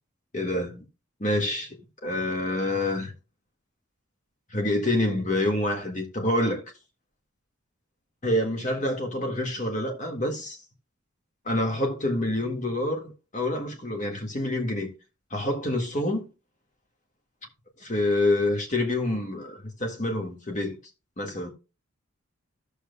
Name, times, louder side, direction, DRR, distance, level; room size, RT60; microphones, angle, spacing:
voice 1, 0.3-0.8 1.2-1.8 2.0-3.1 4.5-6.6 8.2-10.6 11.5-14.9 15.3-16.3 17.8-20.8 21.2-21.5, left 1 dB, 35° left, 1.7 m, -27 dB
15.0 x 6.8 x 2.2 m
head